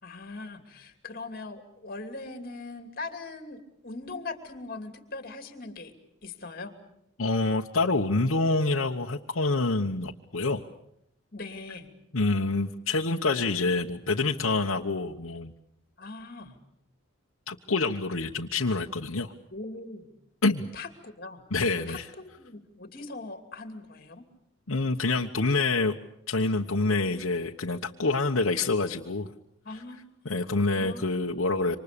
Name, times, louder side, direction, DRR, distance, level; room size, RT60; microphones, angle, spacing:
voice 1, 0.0-5.9 6.2-6.8 11.3-11.9 16.0-16.6 19.5-20.1 20.7-21.5 21.9-24.2 29.6-30.1 30.5-31.1, left 3 dB, 45° left, 7 dB, 2.8 m, -41 dB
voice 2, 7.2-10.6 12.1-15.5 17.5-19.3 20.4-20.7 21.5-22.1 24.7-26.0 26.3-29.3 30.2-31.8, left 3 dB, 75° left, 0 dB, 1.1 m, -27 dB
27.5 x 25.5 x 6.8 m, 0.75 s
head